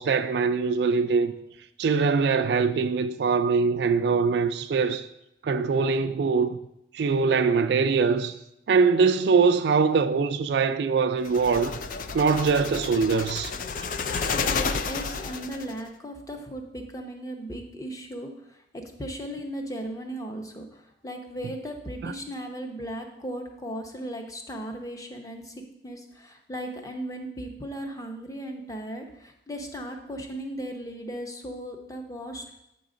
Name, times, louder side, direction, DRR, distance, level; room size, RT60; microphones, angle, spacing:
voice 1, 0.0-1.3 1.8-5.1 5.4-6.6 6.9-8.3 8.7-11.7 12.1-13.5 22.0-22.1, right 5 dB, 65° right, 0.3 m, -22 dB
sound 1, 11.2-15.8, left 5 dB, 45° left, 0.3 m, -31 dB
voice 2, 14.9-32.5, right 1 dB, 20° left, 0.7 m, -37 dB
8.2 x 3.9 x 4.9 m
head